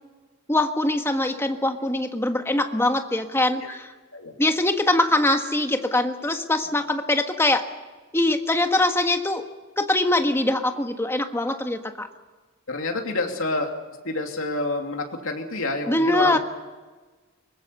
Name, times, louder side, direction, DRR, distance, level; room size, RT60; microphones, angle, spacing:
voice 1, 0.5-3.9 4.4-7.7 8.1-9.4 9.8-12.1 15.8-16.4, left 1 dB, 10° left, 6 dB, 1.5 m, -23 dB
voice 2, 12.7-13.7 14.0-16.4, left 2 dB, 80° left, 2 dB, 2.9 m, -28 dB
23.0 x 21.0 x 6.9 m, 1.3 s
head